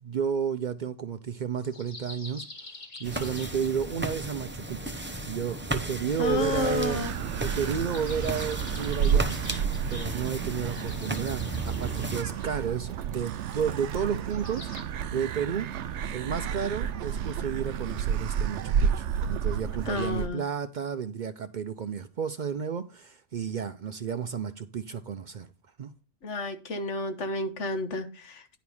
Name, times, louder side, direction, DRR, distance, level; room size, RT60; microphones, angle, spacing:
voice 1, 0.0-2.5 3.0-5.0 5.3-7.0 7.4-9.4 9.9-14.7 15.1-15.7 16.1-25.5 25.8-25.9, right 7 dB, 55° right, 0.5 m, -32 dB
sound 1, 1.6-4.3 5.1-6.8 7.5-14.8, left 2 dB, 60° left, 1.8 m, -47 dB
sound 2, 3.0-12.2, right 1 dB, 10° right, 0.6 m, -35 dB
voice 2, 6.2-7.1 19.9-20.4 26.2-28.6, left 2 dB, 85° left, 1.5 m, -31 dB
sound 3, 6.2-20.3, right 7 dB, 75° right, 0.9 m, -31 dB
10.5 x 4.8 x 5.3 m
omnidirectional pair, 1.2 m